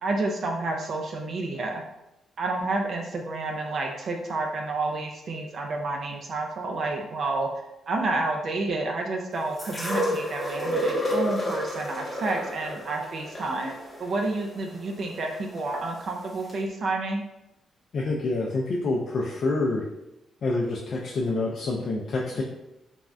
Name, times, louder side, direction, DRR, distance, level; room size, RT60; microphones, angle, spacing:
voice 1, 0.0-1.8 2.4-7.5 7.9-13.7 14.0-17.2, right 2 dB, 50° right, 1 dB, 0.3 m, -29 dB
sound 1, 9.6-15.6 16.5-16.6, equal, 15° left, 0.8 m, -30 dB
voice 2, 17.9-19.8 20.4-22.4, left 2 dB, 50° left, -3 dB, 0.3 m, -27 dB
3.4 x 2.1 x 2.4 m, 0.93 s
cardioid pair, 130°, 0 cm